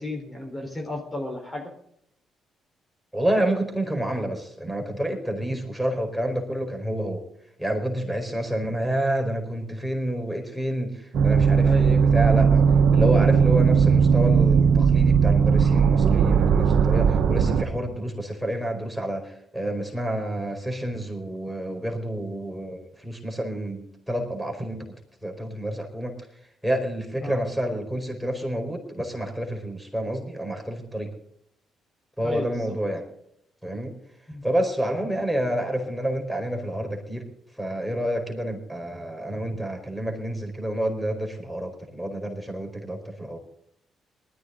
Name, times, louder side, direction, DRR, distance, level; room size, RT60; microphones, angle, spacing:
voice 1, 0.0-1.7 11.6-12.0 27.2-27.4 32.2-32.6 34.3-34.4, left 1 dB, 20° left, 2 dB, 4.2 m, -33 dB
voice 2, 3.1-7.2 7.6-12.6 12.9-24.9 25.2-26.3 26.6-31.1 32.2-33.1 33.6-34.0 34.4-37.3 37.6-43.4, right 1 dB, ahead, 3 dB, 4.7 m, -29 dB
sound 1, 11.1-17.6, right 6 dB, 70° right, 1.2 m, -18 dB
19.5 x 14.0 x 3.8 m, 0.73 s
supercardioid pair, 65°, 0 cm